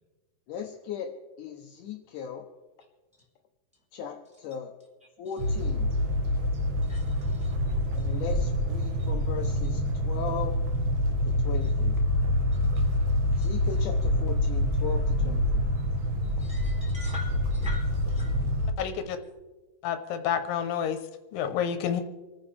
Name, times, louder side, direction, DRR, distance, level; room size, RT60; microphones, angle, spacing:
voice 1, 0.5-2.5 3.9-4.7 5.2-5.9 7.9-10.6 11.3-11.9 13.4-15.6, left 7 dB, 75° left, 3 dB, 2.2 m, -37 dB
sound 1, 5.4-18.7, left 1 dB, 65° right, 2.5 m, -26 dB
voice 2, 6.9-7.5 13.4-13.5 16.4-18.5, left 2 dB, ahead, -5 dB, 3.5 m, -44 dB
voice 3, 18.8-19.2 19.8-21.0 21.3-22.0, left 8 dB, 90° left, 8 dB, 2.7 m, -29 dB
27.5 x 9.9 x 3.4 m, 1.2 s
omnidirectional pair, 4.0 m